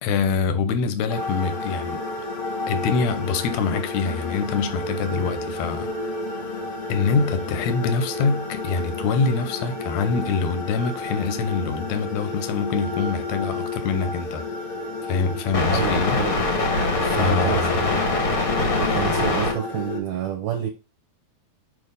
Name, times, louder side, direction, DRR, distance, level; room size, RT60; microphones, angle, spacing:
voice 1, 0.0-2.0 2.7-5.9 6.9-14.5 15.1-16.2 17.0-17.9, left 5 dB, 70° left, 1.8 m, -25 dB
sound 1, 1.1-20.0, left 2 dB, 50° left, 1.0 m, -27 dB
voice 2, 15.7-16.3 17.1-17.7 18.8-20.7, right 11 dB, 65° right, 1.9 m, -28 dB
6.2 x 3.2 x 5.3 m
omnidirectional pair, 4.1 m